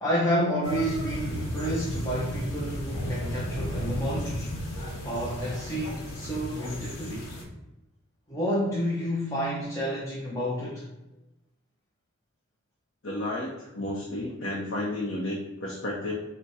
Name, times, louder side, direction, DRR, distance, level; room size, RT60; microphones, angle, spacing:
voice 1, 0.0-4.5 5.0-7.3 8.3-10.9, equal, 15° left, -5 dB, 0.5 m, -30 dB
sound 1, 0.6-7.4, equal, 90° left, 1.0 m, -34 dB
voice 2, 13.0-16.1, left 1 dB, 55° left, -4 dB, 0.7 m, -32 dB
4.7 x 2.2 x 4.1 m, 0.98 s
head